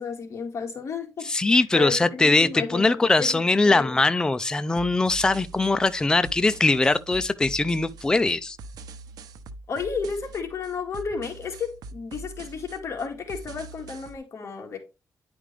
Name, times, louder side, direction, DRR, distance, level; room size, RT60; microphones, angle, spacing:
voice 1, 0.0-4.0 9.7-14.8, left 5 dB, 45° left, 1.9 m, -33 dB
voice 2, 1.2-8.6, left 3 dB, 10° left, 0.4 m, -21 dB
sound 1, 4.7-14.2, right 3 dB, 85° right, 0.8 m, -43 dB
10.0 x 5.1 x 3.3 m
wide cardioid pair, 160°, 6 cm